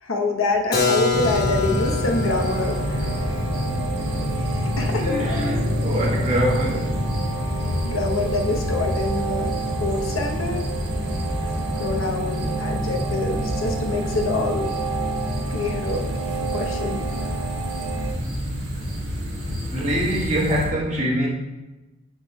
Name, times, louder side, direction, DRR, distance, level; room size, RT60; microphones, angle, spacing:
voice 1, 0.0-3.1 4.4-5.9 7.8-9.5 9.8-10.7 11.8-14.7 15.5-16.1 16.5-17.1, left 2 dB, 80° left, 0.9 m, -26 dB
Keyboard (musical), 0.7-6.3, left 4 dB, 50° left, 0.9 m, -28 dB
sound 1, 1.1-20.7, equal, 60° right, 1.6 m, -27 dB
sound 2, 2.2-18.1, right 4 dB, 85° right, 0.6 m, -32 dB
voice 2, 5.0-7.0 19.7-21.3, equal, 35° right, 1.2 m, -25 dB
7.7 x 5.8 x 2.2 m
head